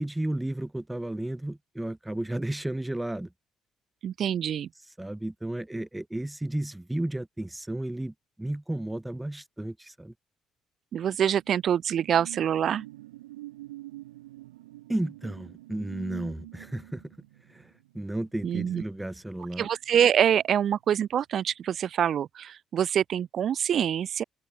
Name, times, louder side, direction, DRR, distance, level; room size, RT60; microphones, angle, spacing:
voice 1, 0.0-3.3 4.8-10.1 14.9-17.2 17.5-19.7, right 1 dB, 10° right, 0.9 m, -33 dB
voice 2, 4.0-4.7 10.9-12.9 18.4-18.8 19.6-24.2, right 9 dB, 50° right, 1.8 m, -25 dB
sound 1, 11.1-20.1 20.4-20.7, right 17 dB, 75° right, 5.6 m, -47 dB
open air
figure-of-eight pair, 45°, 0 cm